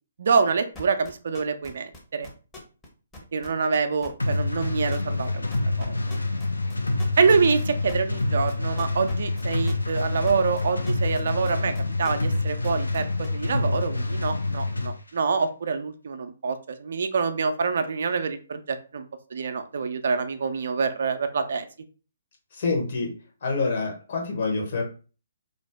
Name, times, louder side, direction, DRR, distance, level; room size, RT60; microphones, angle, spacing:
voice 1, 0.2-2.3 3.3-5.5 5.8-5.9 7.2-11.7 12.0-19.0 19.3-21.7, right 5 dB, 55° right, 9 dB, 0.3 m, -26 dB
sound 1, 0.7-2.9 3.1-4.4 4.6-5.3 5.5-12.4 12.6-13.3, left 1 dB, 15° left, 0.7 m, -42 dB
sound 2, 4.2-14.9, left 2 dB, 80° left, 0.4 m, -27 dB
voice 2, 22.5-23.1 23.4-24.8, left 3 dB, 45° left, -1 dB, 0.9 m, -26 dB
2.5 x 2.0 x 3.4 m, 0.36 s
figure-of-eight pair, 135°, 0 cm